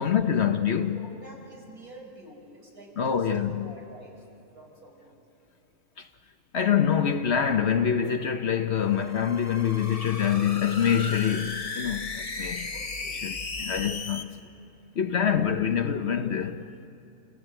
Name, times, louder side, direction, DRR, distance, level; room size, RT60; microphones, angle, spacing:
voice 1, 0.0-1.0 3.0-3.7 6.0-6.1 6.5-12.7 13.2-14.3 15.0-16.7, left 8 dB, 55° left, 1.0 m, -25 dB
voice 2, 0.9-4.2 4.5-5.2 12.7-13.3, right 1 dB, 75° right, 6.3 m, -48 dB
sound 1, 8.8-14.2, left 3 dB, 30° left, 0.9 m, -36 dB
27.5 x 17.0 x 9.1 m
omnidirectional pair, 1.6 m